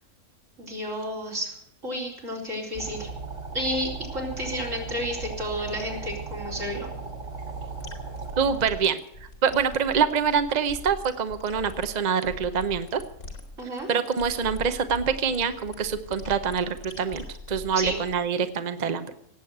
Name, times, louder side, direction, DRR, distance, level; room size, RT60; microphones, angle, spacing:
voice 1, 0.6-1.6 1.8-3.1 3.5-6.9 13.6-13.9 17.7-18.0, equal, 85° right, -2 dB, 4.6 m, -31 dB
sound 1, 2.7-8.7, right 4 dB, 70° right, 2.8 m, -37 dB
sound 2, 7.8-18.2, left 2 dB, 85° left, 3.2 m, -42 dB
voice 2, 8.4-9.0 9.4-13.0 13.9-19.1, right 6 dB, 40° right, 9 dB, 0.8 m, -25 dB
18.0 x 8.3 x 8.0 m, 0.78 s
omnidirectional pair, 1.3 m